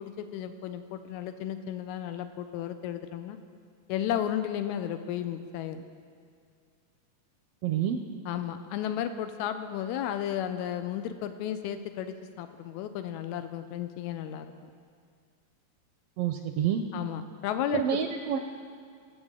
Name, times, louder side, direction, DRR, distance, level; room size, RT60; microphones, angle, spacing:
voice 1, 0.0-3.4 3.9-5.8 8.3-14.7 16.9-18.0, left 10 dB, 90° left, 9 dB, 2.0 m, -33 dB
voice 2, 7.6-8.0 16.2-16.8 17.7-18.4, right 9 dB, 80° right, 6 dB, 1.5 m, -28 dB
22.5 x 8.0 x 3.7 m, 2.2 s
omnidirectional pair, 3.3 m